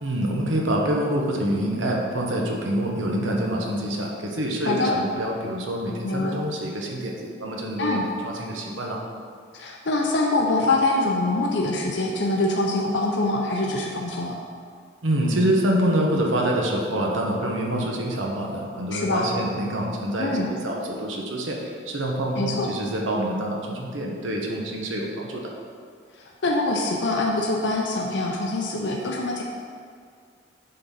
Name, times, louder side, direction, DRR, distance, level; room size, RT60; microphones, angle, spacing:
voice 1, 0.0-9.0 10.6-10.7 15.0-25.5, right 1 dB, 80° right, -1 dB, 1.1 m, -26 dB
voice 2, 6.0-6.4 7.8-8.1 9.5-14.4 18.9-19.3 20.2-20.5 22.4-22.7 26.4-29.4, left 2 dB, 65° left, -1 dB, 0.7 m, -24 dB
7.7 x 4.0 x 5.6 m, 2.1 s
head